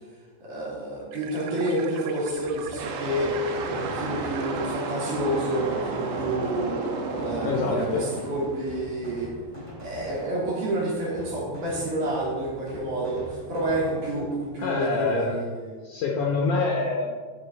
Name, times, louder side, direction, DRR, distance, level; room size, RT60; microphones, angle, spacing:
voice 1, 0.4-6.8 7.2-9.3 9.8-15.8, right 1 dB, 50° right, -6 dB, 4.5 m, -29 dB
sound 1, 1.1-6.9, right 7 dB, 85° right, 2.8 m, -41 dB
sound 2, 2.2-15.0, equal, 15° right, 2.7 m, -43 dB
sound 3, 2.8-9.1, right 3 dB, 70° right, 2.9 m, -32 dB
voice 2, 7.4-8.0 14.6-15.4 15.8-17.3, left 4 dB, 75° left, -1 dB, 1.8 m, -26 dB
13.5 x 7.1 x 4.5 m, 1.6 s
omnidirectional pair, 4.8 m